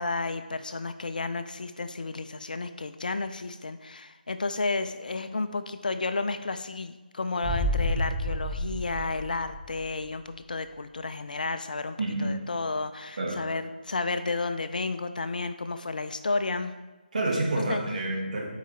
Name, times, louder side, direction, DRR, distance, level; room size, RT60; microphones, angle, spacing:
voice 1, 0.0-16.7 17.7-17.8, left 3 dB, 60° left, 10 dB, 0.5 m, -32 dB
sound 1, 7.4-10.1 10.4-10.5, equal, 5° left, 0.4 m, -30 dB
voice 2, 12.0-12.3 13.2-13.4 17.1-18.5, right 2 dB, 50° right, -1 dB, 1.6 m, -28 dB
10.0 x 4.8 x 3.2 m, 1.2 s
figure-of-eight pair, 155°, 5 cm